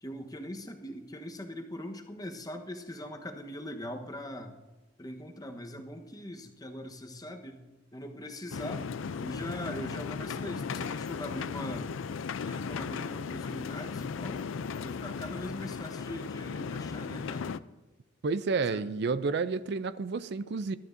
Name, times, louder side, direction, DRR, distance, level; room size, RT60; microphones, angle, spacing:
voice 1, 0.0-4.5 5.0-8.9 9.2-11.9 12.4-14.4 14.8-17.6 18.6-18.8, left 1 dB, 20° left, 4 dB, 1.1 m, -41 dB
sound 1, 8.5-17.6, left 5 dB, 75° left, 0.4 m, -36 dB
voice 2, 18.2-20.8, right 4 dB, 55° right, 14 dB, 0.4 m, -30 dB
21.5 x 12.0 x 2.7 m, 1.2 s
head